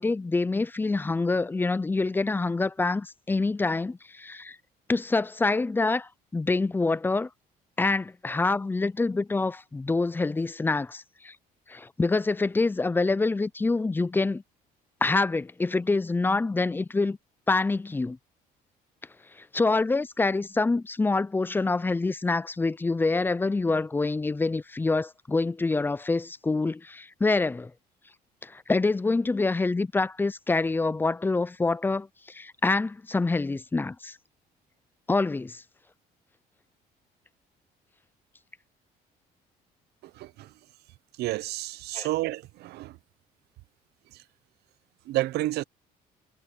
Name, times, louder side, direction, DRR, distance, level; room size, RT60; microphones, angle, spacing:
voice 1, 0.0-4.6 4.9-7.3 7.8-11.3 11.7-14.4 15.0-17.2 17.5-18.2 19.5-27.7 28.4-34.2 35.1-35.6 41.9-42.1, left 3 dB, 10° left, 0.5 m, -26 dB
voice 2, 41.2-42.9 45.1-45.6, right 17 dB, 75° right, 0.7 m, -29 dB
cardioid pair, 110°, 17 cm